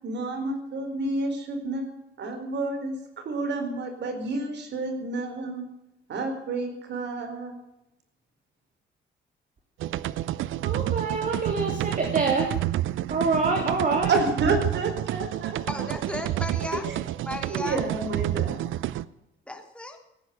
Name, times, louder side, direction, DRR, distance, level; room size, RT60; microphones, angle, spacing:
voice 1, 0.0-5.7 6.1-7.6 14.1-15.9 16.9-17.0 17.5-18.6, right 3 dB, 60° right, 6 dB, 4.6 m, -30 dB
sound 1, 9.8-19.0, right 13 dB, 80° right, 0.7 m, -29 dB
voice 2, 10.2-12.6 13.1-14.1, right 4 dB, 40° right, 3 dB, 3.2 m, -26 dB
voice 3, 15.7-16.9 17.2-17.8 19.5-20.0, left 1 dB, 5° left, 4 dB, 3.4 m, -34 dB
17.5 x 10.0 x 8.1 m, 0.88 s
cardioid pair, 90°, 20 cm